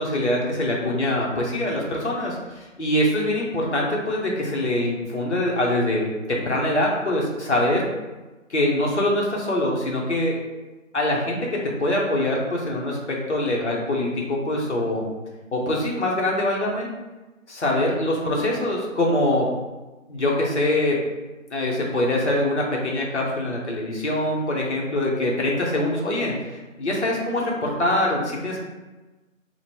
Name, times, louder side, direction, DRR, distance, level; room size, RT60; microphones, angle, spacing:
voice 1, 0.0-7.9 8.5-10.4 10.9-15.0 15.5-16.9 17.5-19.5 20.1-21.0 21.5-28.6, left 1 dB, 55° left, -2 dB, 0.8 m, -24 dB
2.9 x 2.2 x 2.9 m, 1.2 s
figure-of-eight pair, 170°, 40 cm